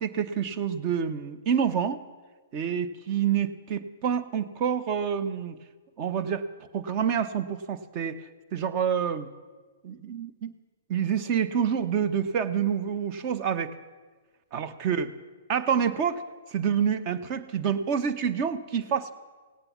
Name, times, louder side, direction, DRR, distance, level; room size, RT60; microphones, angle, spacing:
voice 1, 0.0-2.0 2.5-5.6 6.0-6.5 6.7-8.2 8.5-9.3 9.8-10.5 10.9-13.7 14.5-15.1 15.5-16.2 16.5-19.1, right 7 dB, 35° right, 11 dB, 0.9 m, -27 dB
17.0 x 8.8 x 7.2 m, 1.4 s
hypercardioid pair, 125°, 0 cm